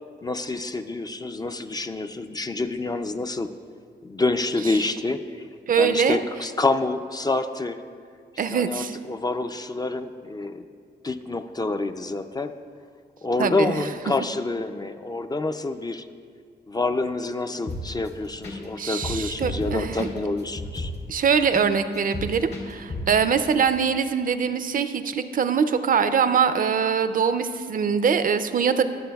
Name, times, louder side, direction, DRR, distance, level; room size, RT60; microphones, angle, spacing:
voice 1, 0.2-3.5 4.0-5.5 5.8-7.8 8.3-10.6 11.0-12.5 13.2-16.0 16.7-20.9, left 3 dB, 20° left, 7 dB, 0.3 m, -27 dB
voice 2, 5.7-6.2 8.4-9.0 13.4-13.7 18.8-20.1 21.1-28.8, right 6 dB, 50° right, 11 dB, 0.4 m, -23 dB
sound 1, 17.6-18.1 18.4-18.6 18.8-21.7 21.9-23.2 23.5-23.6, left 1 dB, 80° left, 1.8 m, -32 dB
20.5 x 6.9 x 2.3 m, 2.1 s
wide cardioid pair, 135°, 18 cm